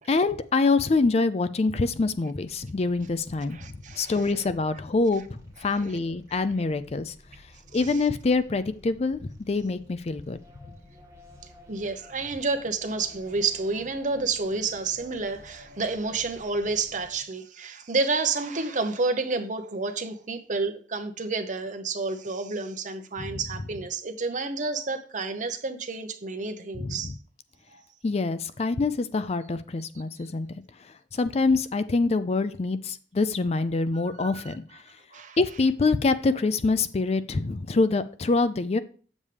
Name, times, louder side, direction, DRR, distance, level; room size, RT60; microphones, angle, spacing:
voice 1, 0.1-3.6 4.0-7.1 7.7-9.2 9.5-10.4 23.2-23.3 26.8-27.1 28.0-30.5 31.1-34.8 35.4-38.8, left 3 dB, 35° left, 0.4 m, -25 dB
sound 1, 2.4-17.2, equal, 15° right, 1.8 m, -52 dB
voice 2, 3.5-4.4 5.6-6.0 7.7-8.0 11.7-27.2 27.7-27.8 34.1-34.5 35.1-35.4, right 3 dB, 45° right, 0.9 m, -30 dB
8.2 x 7.3 x 3.3 m
head